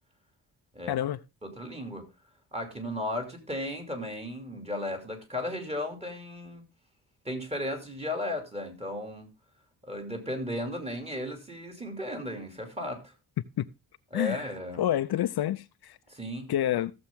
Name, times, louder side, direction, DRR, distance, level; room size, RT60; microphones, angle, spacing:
voice 1, 0.9-1.2 13.6-13.7 14.1-14.5 14.8-16.0 16.5-16.9, left 12 dB, 75° left, 0.6 m, -28 dB
voice 2, 1.4-2.1 2.5-6.6 7.2-9.3 9.8-13.1 14.1-14.8 16.1-16.5, left 1 dB, 15° right, 2.8 m, -35 dB
15.5 x 7.3 x 3.6 m
wide cardioid pair, 135°, 39 cm